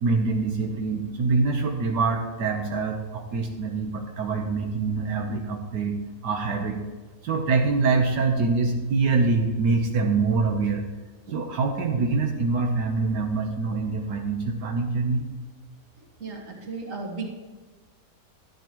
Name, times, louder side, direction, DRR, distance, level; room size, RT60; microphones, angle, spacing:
voice 1, 0.0-6.0 6.2-6.8 7.2-10.9 11.3-15.3, right 4 dB, 80° right, 2 dB, 1.6 m, -25 dB
voice 2, 16.0-17.3, right 3 dB, 50° right, 1 dB, 2.0 m, -35 dB
12.5 x 11.0 x 3.0 m, 1.3 s
omnidirectional pair, 1.8 m